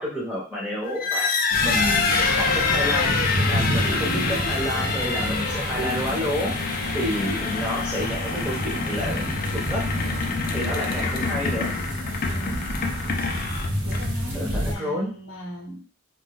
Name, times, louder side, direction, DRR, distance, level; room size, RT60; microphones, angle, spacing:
voice 1, 0.0-2.0 2.3-3.1 3.5-9.3 9.5-9.8 10.5-11.7 14.3-15.1, left 1 dB, 5° right, -7 dB, 1.1 m, -29 dB
sound 1, 0.9-14.3, left 4 dB, 45° left, 0.4 m, -26 dB
moderate rain with lightning in distance, 1.5-14.7, equal, 70° right, 0.7 m, -29 dB
voice 2, 10.9-11.4 12.0-12.7 13.8-15.8, left 1 dB, 80° left, -1 dB, 0.9 m, -38 dB
2.5 x 2.2 x 3.5 m, 0.38 s
head